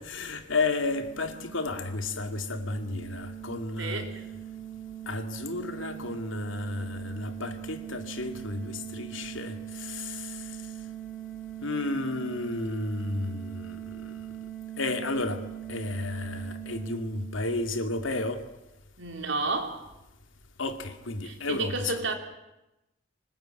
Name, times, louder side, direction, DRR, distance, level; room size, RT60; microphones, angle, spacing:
voice 1, 0.0-4.0 5.1-10.6 11.6-14.2 14.8-15.4 15.7-18.4 20.6-21.9, left 2 dB, 80° left, 2.2 m, -32 dB
sound 1, 0.6-18.1, right 12 dB, 5° right, 2.5 m, -41 dB
voice 2, 3.8-4.2 19.0-19.9 21.2-22.1, right 3 dB, 75° right, 3.7 m, -31 dB
25.0 x 21.0 x 9.0 m
head